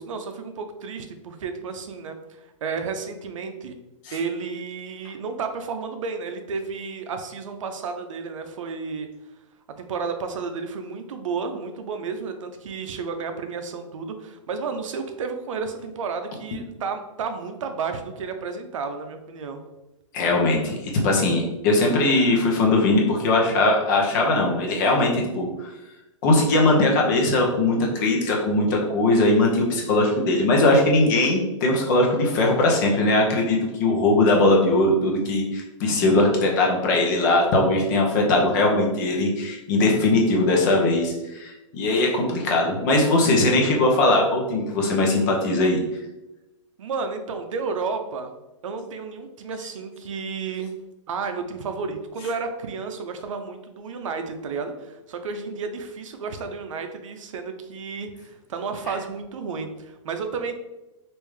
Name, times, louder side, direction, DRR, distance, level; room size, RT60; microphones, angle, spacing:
voice 1, 0.0-3.8 4.1-9.1 9.8-19.6 46.8-48.3 48.6-50.7 51.1-60.5, right 5 dB, 70° right, 7 dB, 0.6 m, -32 dB
voice 2, 20.1-25.5 26.2-45.8, left 2 dB, 35° left, 0 dB, 0.7 m, -20 dB
3.3 x 2.6 x 3.2 m, 1.0 s
hypercardioid pair, 160°, 17 cm